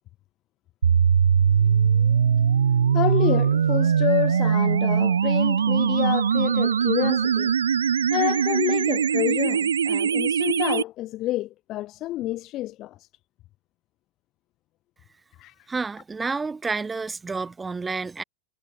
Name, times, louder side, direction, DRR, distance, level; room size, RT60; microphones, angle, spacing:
sound 1, 0.8-10.8, right 7 dB, 70° right, 1.3 m, -21 dB
voice 1, 2.9-7.5 8.1-13.1 15.4-15.7, left 16 dB, 35° left, 3.1 m, -28 dB
voice 2, 15.7-18.2, right 4 dB, 10° right, 1.1 m, -29 dB
figure-of-eight pair, 90°, 0 cm